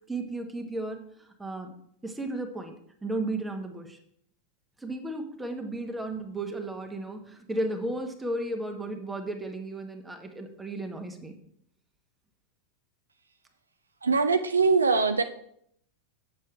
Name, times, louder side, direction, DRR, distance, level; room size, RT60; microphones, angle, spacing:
voice 1, 0.1-1.0 1.4-1.7 2.0-2.7 3.0-4.0 4.8-11.3, right 2 dB, 10° right, 4 dB, 1.3 m, -34 dB
voice 2, 14.0-15.2, right 4 dB, 75° right, 9 dB, 0.5 m, -22 dB
7.7 x 7.3 x 4.6 m, 0.69 s
figure-of-eight pair, 90°, 0 cm